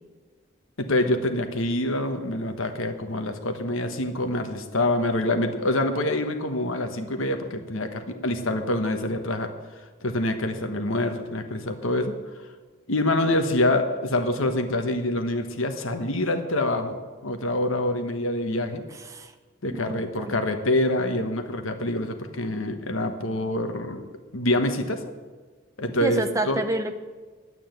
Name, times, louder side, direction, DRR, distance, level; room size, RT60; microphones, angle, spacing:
voice 1, 0.8-9.5 10.0-12.1 12.9-17.0 17.2-18.8 19.6-24.0 24.3-25.0 25.8-26.6, left 1 dB, 75° left, 7 dB, 1.3 m, -26 dB
voice 2, 18.9-19.3 19.7-20.4 26.0-27.0, right 1 dB, 15° right, 6 dB, 0.7 m, -29 dB
11.0 x 9.2 x 7.9 m, 1.4 s
head